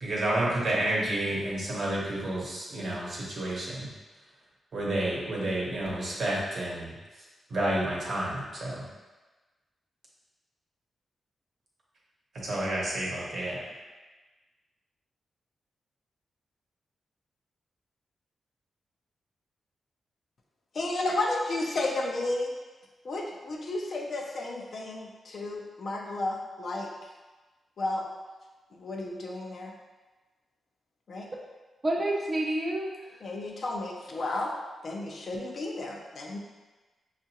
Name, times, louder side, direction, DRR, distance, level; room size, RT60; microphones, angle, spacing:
voice 1, 0.0-3.9 4.7-6.9 7.5-8.8 12.4-13.6, right 1 dB, 55° right, -4 dB, 0.9 m, -30 dB
voice 2, 20.7-22.5 23.0-26.9 27.8-28.0 28.7-29.7 31.1-31.3 33.2-34.5 34.8-36.4, left 2 dB, 50° left, 0 dB, 0.5 m, -32 dB
voice 3, 31.8-33.2, right 1 dB, 25° right, -1 dB, 0.6 m, -29 dB
5.3 x 2.4 x 2.8 m, 1.2 s
wide cardioid pair, 150°, 0 cm